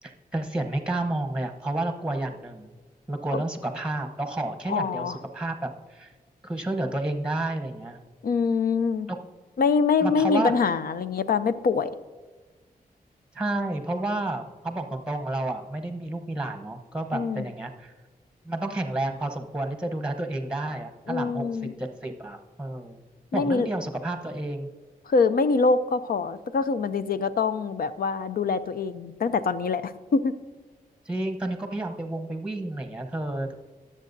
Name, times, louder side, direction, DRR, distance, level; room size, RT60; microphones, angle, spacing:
voice 1, 0.0-2.7 3.1-6.1 6.4-8.0 9.1-9.2 10.0-10.5 13.3-17.9 18.4-21.4 21.8-23.0 23.3-24.7 31.1-33.5, right 2 dB, 5° right, 5 dB, 1.0 m, -30 dB
voice 2, 4.7-5.2 8.2-9.1 9.6-11.9 17.1-17.4 21.1-21.7 23.3-23.7 25.1-30.3, left 4 dB, 70° left, 12 dB, 0.6 m, -24 dB
22.5 x 7.5 x 2.7 m, 1.3 s
wide cardioid pair, 110°, 16 cm